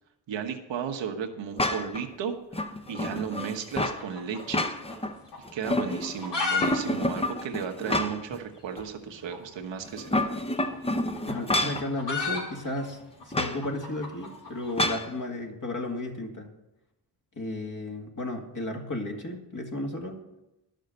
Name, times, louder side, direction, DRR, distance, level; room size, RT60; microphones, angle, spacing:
voice 1, 0.3-2.3 2.9-4.7 5.5-10.4, right 7 dB, 85° right, 4 dB, 1.2 m, -34 dB
sound 1, 1.6-2.0 2.5-4.0 4.4-5.1 5.5-6.2 6.6-8.4 8.8-8.9 9.9-11.9 13.3-13.6 14.8-15.1, left 1 dB, 15° left, 0.7 m, -28 dB
sound 2, 3.7-5.1 5.3-5.4 5.9-6.7 6.9-7.0 7.3-7.4 8.0-8.1 9.2-9.4 10.6-14.8, left 4 dB, 70° left, 2.8 m, -32 dB
voice 2, 11.3-13.0 13.2-16.5 17.3-20.2, left 2 dB, 45° left, 2 dB, 2.0 m, -33 dB
11.5 x 6.5 x 6.7 m, 0.94 s
cardioid pair, 80°, 44 cm